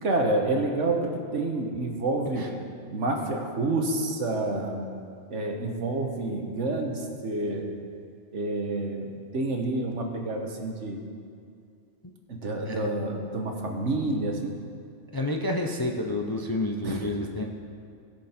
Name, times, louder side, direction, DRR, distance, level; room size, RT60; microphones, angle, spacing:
voice 1, 0.0-2.5 2.9-4.9 5.3-7.7 8.3-11.0 12.3-14.5 16.8-17.0, right 2 dB, 70° right, 2 dB, 1.5 m, -28 dB
voice 2, 15.1-17.4, left 1 dB, 25° left, 1 dB, 0.5 m, -29 dB
19.5 x 6.6 x 4.4 m, 2.4 s
omnidirectional pair, 1.3 m